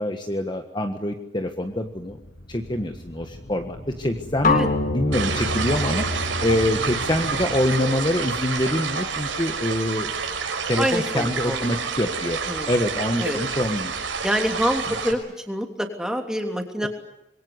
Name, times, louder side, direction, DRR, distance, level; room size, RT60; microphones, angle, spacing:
voice 1, 0.0-2.2 2.5-4.6 4.9-10.1 10.7-12.4 12.7-13.9 16.8-16.9, left 1 dB, 25° left, 5 dB, 1.5 m, -25 dB
sound 1, 1.7-8.7, left 1 dB, 90° left, 6.4 m, -35 dB
sound 2, 4.4-8.4, left 3 dB, 45° left, 2.0 m, -28 dB
sound 3, 5.1-15.1, right 5 dB, 90° right, 5.6 m, -29 dB
voice 2, 10.8-11.9 12.5-12.7 13.2-13.4 14.2-15.2 15.5-16.9, equal, 5° right, 4 dB, 3.1 m, -26 dB
26.0 x 23.0 x 9.8 m, 0.86 s
head